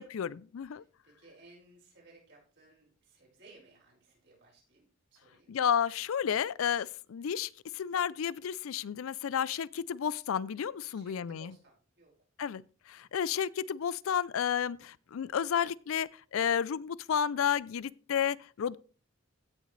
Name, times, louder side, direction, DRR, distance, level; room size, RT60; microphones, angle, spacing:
voice 1, 0.0-0.8 5.5-11.5 12.4-18.8, left 8 dB, 85° left, 0.4 m, -32 dB
voice 2, 0.8-4.8 5.1-5.5 10.9-12.1, right 3 dB, 55° right, 5.3 m, -59 dB
16.0 x 6.6 x 3.2 m
head